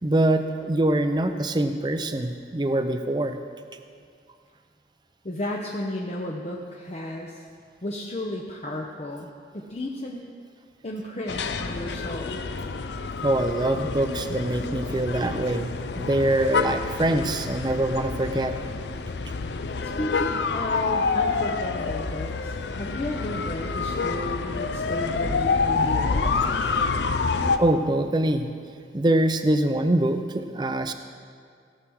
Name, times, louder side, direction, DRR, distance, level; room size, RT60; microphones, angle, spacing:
voice 1, 0.0-3.4 13.2-18.6 27.6-28.5 28.9-30.9, right 1 dB, 25° right, 8 dB, 0.5 m, -24 dB
voice 2, 5.2-7.5 7.8-10.3 10.8-12.4 19.5-26.4, left 1 dB, 40° left, -1 dB, 0.7 m, -33 dB
sound 1, 11.3-27.6, left 4 dB, 80° left, 0.5 m, -27 dB
16.5 x 6.2 x 6.2 m, 2.2 s
head